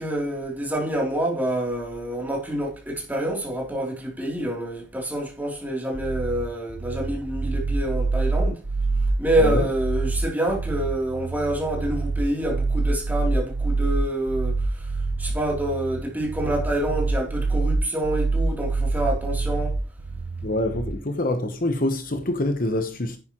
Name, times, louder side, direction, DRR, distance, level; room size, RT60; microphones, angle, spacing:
voice 1, 0.0-8.6 9.2-19.8, right 1 dB, 10° right, 3.3 m, -27 dB
sound 1, 5.9-21.0, right 3 dB, 80° right, 0.9 m, -26 dB
voice 2, 20.4-23.2, left 1 dB, 45° left, 1.0 m, -25 dB
10.5 x 9.8 x 3.1 m
head